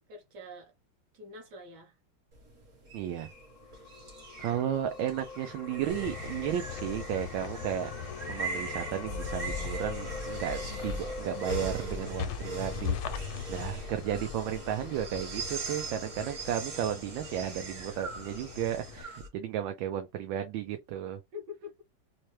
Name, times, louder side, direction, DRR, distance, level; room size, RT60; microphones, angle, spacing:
voice 1, 0.1-0.7 1.1-2.0 13.4-13.6 21.3-21.7, left 3 dB, 55° right, 1.7 m, -45 dB
sound 1, 2.3-19.3, right 2 dB, 40° right, 1.4 m, -41 dB
voice 2, 2.9-3.3 4.4-13.2 13.5-21.2, right 10 dB, 75° right, 1.2 m, -34 dB
Singing, 3.3-11.5, left 5 dB, 60° left, 1.1 m, -44 dB
sound 2, 5.9-19.0, left 7 dB, 80° left, 1.4 m, -41 dB
4.3 x 2.2 x 3.2 m
omnidirectional pair, 2.3 m